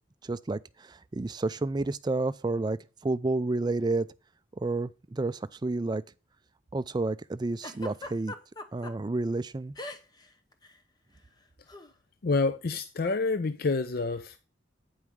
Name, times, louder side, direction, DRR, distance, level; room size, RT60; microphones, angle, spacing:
voice 1, 0.2-4.1 4.6-6.0 6.7-8.3 8.7-9.7, right 2 dB, 20° right, 0.3 m, -30 dB
Giggle, 7.6-8.9 9.8-10.3 10.5-10.8 11.7-11.9, left 2 dB, 20° left, 0.8 m, -40 dB
voice 2, 12.2-14.4, left 3 dB, 50° left, 0.5 m, -28 dB
8.8 x 5.4 x 4.7 m
head